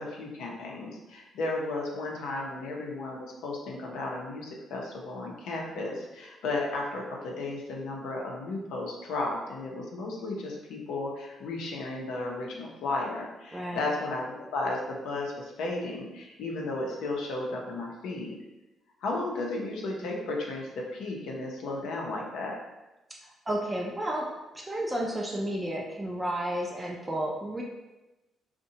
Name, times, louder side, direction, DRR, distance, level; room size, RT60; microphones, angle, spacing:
voice 1, 0.0-18.4 19.0-22.6, left 2 dB, 85° left, -1 dB, 0.5 m, -34 dB
voice 2, 23.2-27.6, right 1 dB, 15° right, -1 dB, 0.4 m, -32 dB
2.7 x 2.1 x 2.7 m, 1.0 s
cardioid pair, 90°, 0 cm